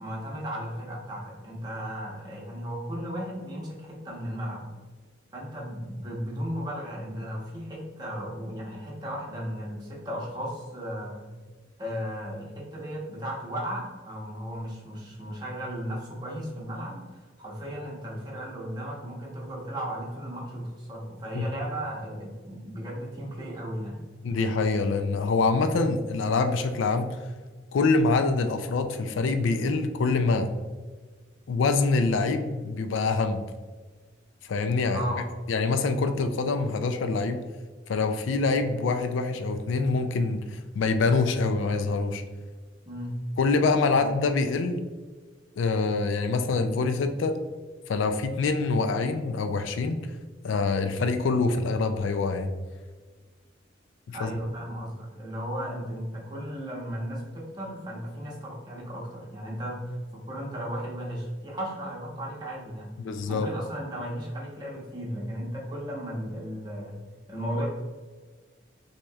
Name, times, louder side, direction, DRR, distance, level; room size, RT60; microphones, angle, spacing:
voice 1, 0.0-4.7 5.3-11.3 11.8-24.0 34.9-35.2 42.8-43.1 43.9-44.0 54.1-62.9 63.3-67.0 67.3-67.7, equal, 20° right, -4 dB, 1.0 m, -35 dB
voice 2, 24.2-27.1 27.7-30.5 31.5-33.4 34.5-35.0 35.5-37.4 37.9-42.2 43.4-44.8 45.6-47.4 47.9-50.0 50.4-52.5 54.1-54.3 63.0-63.5, left 3 dB, 85° left, 7 dB, 0.4 m, -25 dB
6.0 x 2.9 x 2.3 m, 1.4 s
head